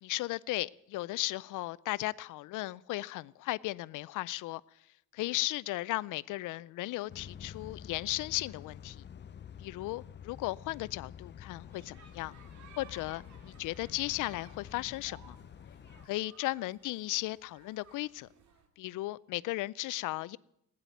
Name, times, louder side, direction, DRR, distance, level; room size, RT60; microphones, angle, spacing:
voice 1, 0.0-4.6 5.1-9.0 9.6-12.3 12.8-15.4 16.1-18.3 18.8-20.4, left 18 dB, 90° left, 0.5 m, -36 dB
sound 1, 7.1-16.1, left 8 dB, 35° left, 0.6 m, -49 dB
sound 2, 11.7-18.7, right 6 dB, 65° right, 2.3 m, -59 dB
16.0 x 9.9 x 9.1 m
cardioid pair, 90°, 30 cm